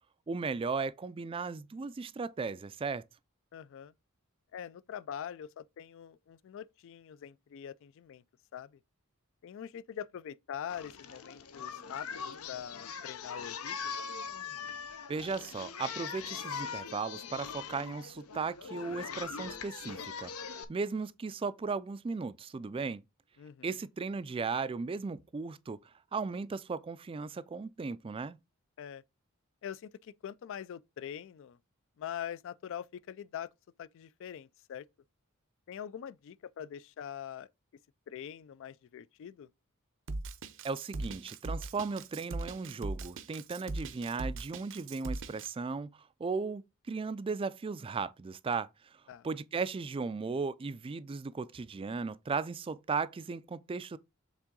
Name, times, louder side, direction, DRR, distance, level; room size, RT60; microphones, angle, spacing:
voice 1, 0.3-3.0 15.1-20.3 20.7-23.0 23.6-25.8 26.1-28.4 40.6-45.9 46.2-48.7 49.2-54.0, right 4 dB, 25° right, 0.3 m, -36 dB
voice 2, 3.5-3.9 4.5-8.2 8.5-8.8 9.4-13.9 23.4-23.7 28.8-29.0 29.6-31.6 32.0-33.5 33.8-34.9 35.7-37.5 38.1-39.5 49.1-49.3, left 9 dB, 60° left, 0.3 m, -43 dB
Singing, 10.7-20.6, left 6 dB, 90° left, 0.8 m, -41 dB
Drum kit, 40.1-45.5, right 2 dB, 60° right, 0.7 m, -39 dB
7.3 x 3.6 x 3.7 m
head